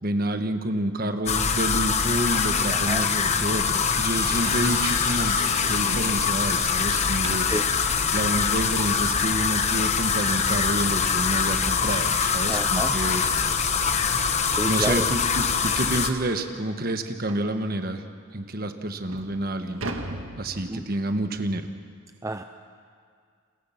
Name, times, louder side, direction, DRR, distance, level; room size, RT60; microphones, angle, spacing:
voice 1, 0.0-7.5 8.1-13.2 14.6-18.0 18.3-19.8 20.4-21.7, right 1 dB, 45° right, 7 dB, 1.4 m, -28 dB
sound 1, 1.3-16.1, left 6 dB, 30° left, 1.0 m, -24 dB
voice 2, 2.7-3.0 7.5-7.6 12.5-13.0 14.5-15.1 20.7-20.8 22.2-22.4, right 2 dB, 15° right, 7 dB, 0.5 m, -30 dB
sound 2, 3.0-9.2, left 3 dB, 75° left, 6.8 m, -42 dB
sound 3, 5.3-7.7 10.5-10.6 11.1-11.2 11.6-11.7 12.2-12.3 13.4-13.5 13.9-14.1 14.7-14.8 15.2-15.3 15.8-15.9 17.3-17.6 18.3-18.4 18.9-21.2, right 2 dB, 70° right, 1.7 m, -39 dB
29.0 x 22.0 x 5.9 m, 2.1 s
head